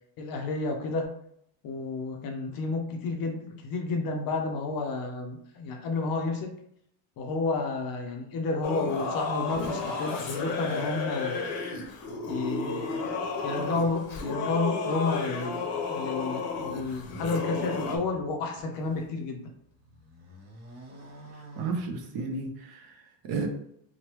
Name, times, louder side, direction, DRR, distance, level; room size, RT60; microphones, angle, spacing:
voice 1, 0.2-1.1 1.6-6.5 7.2-11.4 12.3-12.9 13.4-19.5, left 3 dB, 50° left, 4 dB, 0.5 m, -31 dB
Singing / Musical instrument, 8.6-18.0, left 4 dB, 90° left, 0.8 m, -32 dB
Explosion / Shatter, 9.5-12.3, left 1 dB, ahead, 0.6 m, -45 dB
sound 1, 16.5-19.1 19.6-22.4, equal, 85° right, 1.2 m, -50 dB
voice 2, 21.3-23.5, right 4 dB, 50° right, 3 dB, 0.6 m, -33 dB
3.1 x 2.2 x 2.9 m, 0.71 s
cardioid pair, 155°, 48 cm